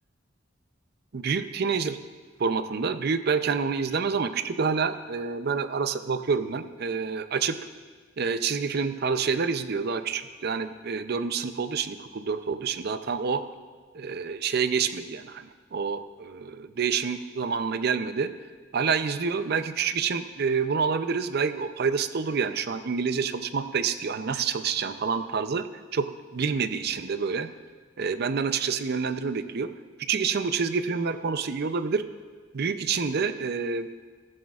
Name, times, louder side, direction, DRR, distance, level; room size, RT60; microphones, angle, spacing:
voice 1, 1.1-2.0 2.4-7.6 8.2-13.4 13.9-18.3 18.7-25.7 25.9-27.5 28.0-29.7 30.0-32.0 32.5-33.9, right 5 dB, 55° right, 11 dB, 0.5 m, -28 dB
15.5 x 13.0 x 2.4 m, 1.5 s
head